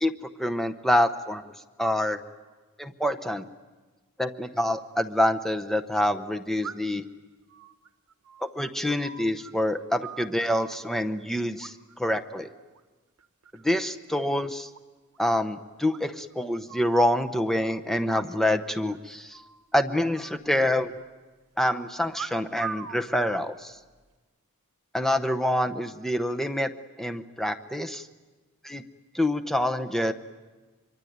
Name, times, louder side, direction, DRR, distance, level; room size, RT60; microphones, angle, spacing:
voice 1, 0.0-1.5 1.8-2.2 2.8-3.5 4.2-7.0 8.4-12.5 13.6-14.7 15.2-19.4 19.7-20.9 21.6-23.8 24.9-26.7 27.0-28.1 28.6-28.8 29.1-30.1, left 1 dB, ahead, 8 dB, 0.8 m, -26 dB
sound 1, 4.8-4.9 6.6-7.1 7.5-9.5 9.8-10.8 11.6-12.1 12.4-12.8 13.2-13.8 14.0-14.1 14.4-14.5 14.7-14.8 15.1-15.2 15.9-17.0 18.0-18.7 18.9-19.0 19.3-19.7 20.1-21.1 22.1-23.0 23.7-24.1, right 7 dB, 80° right, 1.0 m, -41 dB
25.0 x 23.5 x 9.4 m, 1.3 s
head